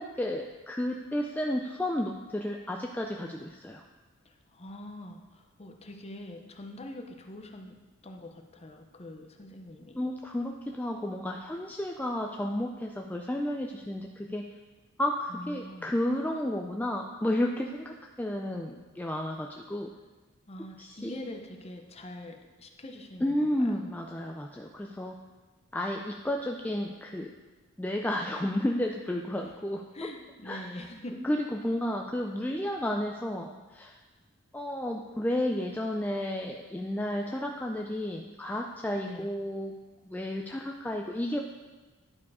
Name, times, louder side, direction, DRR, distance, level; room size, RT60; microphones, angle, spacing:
voice 1, 0.0-3.8 10.0-14.5 15.0-19.9 20.8-21.2 23.2-25.1 25.7-27.3 27.8-29.8 30.4-30.9 31.2-34.0 34.5-39.8 40.0-41.4, left 1 dB, 10° left, 1 dB, 0.3 m, -32 dB
voice 2, 4.2-7.8 8.0-10.0 15.3-15.9 20.5-23.8 29.9-31.2 39.0-39.3, left 1 dB, 30° left, 3 dB, 0.7 m, -44 dB
10.5 x 4.7 x 4.8 m, 1.3 s
head